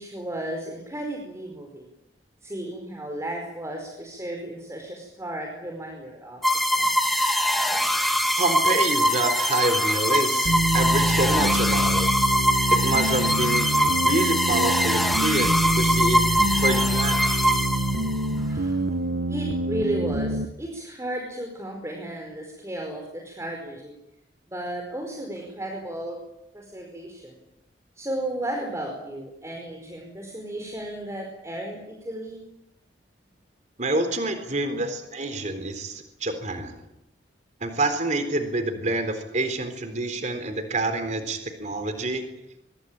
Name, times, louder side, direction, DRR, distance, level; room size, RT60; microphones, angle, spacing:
voice 1, 0.0-1.9 2.4-6.4 6.7-7.1 18.3-18.8 19.3-24.0 24.5-26.2 26.5-27.4 27.9-32.4 34.7-34.8, right 1 dB, 15° right, 2 dB, 4.8 m, -34 dB
sound 1, 6.4-18.3, equal, ahead, 2.5 m, -23 dB
voice 2, 8.4-12.1 12.7-16.3 16.6-17.3 33.8-36.8 37.6-42.3, right 2 dB, 40° right, 8 dB, 3.8 m, -27 dB
sound 2, 10.4-20.4, right 1 dB, 80° right, 1.5 m, -26 dB
24.0 x 23.0 x 9.0 m, 0.86 s
head